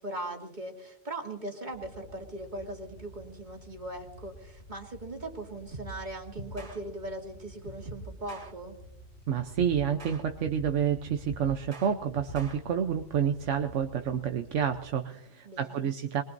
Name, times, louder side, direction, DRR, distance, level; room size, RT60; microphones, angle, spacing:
voice 1, 0.0-8.8 15.4-15.9, right 1 dB, 40° right, 1 dB, 2.6 m, -39 dB
sound 1, 1.7-14.9, equal, 75° left, 5.0 m, -51 dB
sound 2, 5.7-6.0 6.4-6.8 7.6-8.5 9.4-10.7 11.1-12.6, right 2 dB, 60° right, 3.0 m, -43 dB
voice 2, 9.3-16.2, right 8 dB, 90° right, 6 dB, 1.2 m, -29 dB
22.5 x 22.0 x 2.7 m, 0.80 s
omnidirectional pair, 1.2 m